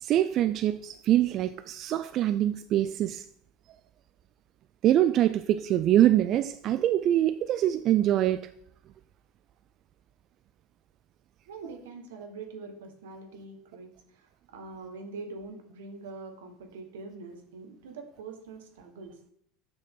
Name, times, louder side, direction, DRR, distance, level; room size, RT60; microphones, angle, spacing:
voice 1, 0.0-3.2 4.8-8.5, right 12 dB, 50° right, 0.3 m, -24 dB
voice 2, 11.5-19.2, right 3 dB, 85° right, 1.3 m, -44 dB
7.5 x 6.1 x 3.7 m
supercardioid pair, 105°, 0 cm